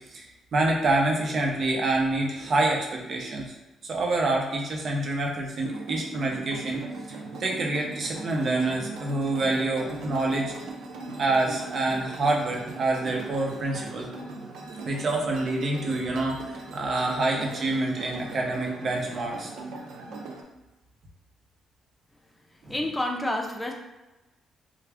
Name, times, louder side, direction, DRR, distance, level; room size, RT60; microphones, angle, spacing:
voice 1, 0.1-3.6 3.9-10.5 11.1-14.1 14.8-19.5 22.6-22.7, right 2 dB, 50° right, 0 dB, 0.8 m, -27 dB
sound 1, 5.6-20.4, right 3 dB, 80° right, 0.5 m, -39 dB
voice 2, 22.5-23.7, left 1 dB, 10° left, 1 dB, 0.6 m, -29 dB
3.5 x 2.4 x 3.4 m, 1.1 s
cardioid pair, 90°, 0 cm